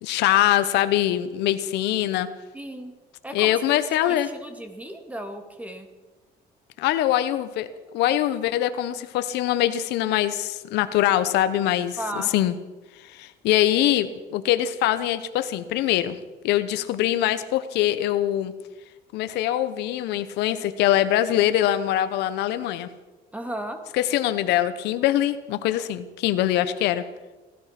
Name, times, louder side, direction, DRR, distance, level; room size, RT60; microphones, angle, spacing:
voice 1, 0.0-2.3 3.3-4.3 6.8-12.0 12.3-12.5 13.0-16.2 16.4-18.5 19.1-22.9 23.9-27.0, left 13 dB, 85° left, 12 dB, 1.0 m, -23 dB
voice 2, 2.5-2.9 3.2-5.9 12.0-12.3 23.3-23.8, right 1 dB, 10° right, 5 dB, 2.4 m, -35 dB
18.0 x 13.0 x 5.9 m, 1.2 s
cardioid pair, 110°, 17 cm